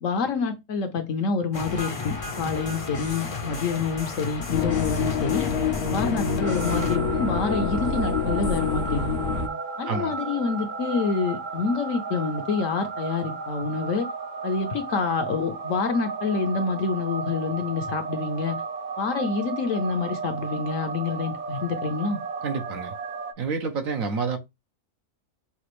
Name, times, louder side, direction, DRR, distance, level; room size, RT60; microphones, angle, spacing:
voice 1, 0.0-5.5 5.9-9.0 9.8-14.1 14.4-18.6 19.0-22.2, left 5 dB, 65° left, 1.1 m, -27 dB
sound 1, 1.5-7.0, left 3 dB, 30° left, 0.6 m, -34 dB
sound 2, 4.5-9.5, left 5 dB, 80° left, 1.3 m, -26 dB
sound 3, 6.4-23.3, right 5 dB, 45° right, 0.6 m, -34 dB
voice 2, 22.4-22.9 23.4-24.4, right 5 dB, 65° right, 1.2 m, -28 dB
5.9 x 2.4 x 3.1 m
omnidirectional pair, 1.6 m